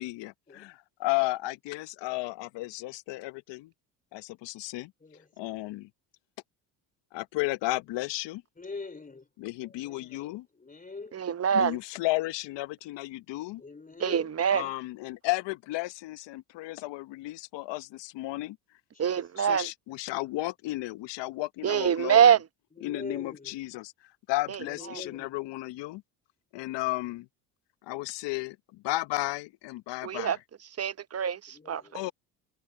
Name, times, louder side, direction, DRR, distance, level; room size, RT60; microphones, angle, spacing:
voice 1, 0.0-3.7 4.1-4.9 5.4-5.9 7.1-8.4 9.4-10.4 11.5-13.6 14.5-18.6 19.4-22.4 22.8-23.9 24.3-26.0 26.5-27.3 27.8-30.4 31.9-32.1, left 19 dB, 65° left, 1.0 m, -33 dB
voice 2, 5.0-5.4 8.6-9.3 9.6-11.2 13.6-14.4 18.9-19.3 22.8-23.6 24.6-25.4 31.5-32.1, left 3 dB, 20° left, 3.8 m, -44 dB
voice 3, 11.1-11.8 14.0-14.6 19.0-19.7 21.6-22.4 24.5-24.6 24.9-25.0 30.0-30.4 30.8-32.0, right 8 dB, 30° right, 0.9 m, -25 dB
supercardioid pair, 70°, 46 cm